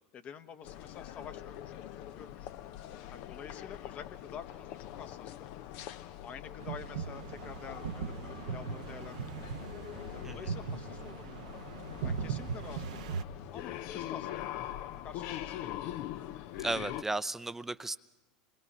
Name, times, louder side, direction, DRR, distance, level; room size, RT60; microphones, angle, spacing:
voice 1, 0.1-1.7 2.1-2.5 3.1-5.5 6.2-9.6 10.1-11.7 12.0-13.2 13.5-14.7 15.0-15.9, left 7 dB, 40° left, 10 dB, 1.2 m, -48 dB
sound 1, 0.6-17.0, left 12 dB, 60° left, 0.7 m, -43 dB
sound 2, 6.6-13.2, right 6 dB, 75° right, 0.9 m, -39 dB
voice 2, 16.6-18.0, right 2 dB, 10° right, 14 dB, 0.6 m, -35 dB
27.5 x 21.0 x 5.5 m, 1.2 s
hypercardioid pair, 85°, 4 cm